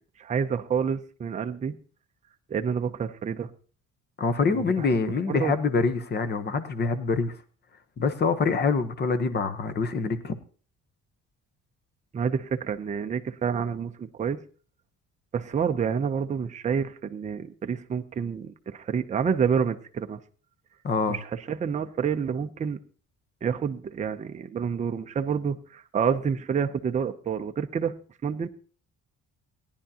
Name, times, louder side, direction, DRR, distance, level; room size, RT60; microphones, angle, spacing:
voice 1, 0.2-1.8 2.5-3.5 4.5-4.9 5.3-5.5 12.1-14.4 15.3-20.2 21.1-22.8 23.4-27.9 28.2-28.5, right 7 dB, 25° right, 6 dB, 0.5 m, -28 dB
voice 2, 4.2-7.3 8.0-10.4 20.8-21.2, left 4 dB, 35° left, 11 dB, 0.9 m, -25 dB
18.0 x 10.5 x 2.8 m, 0.39 s
cardioid pair, 165°, 31 cm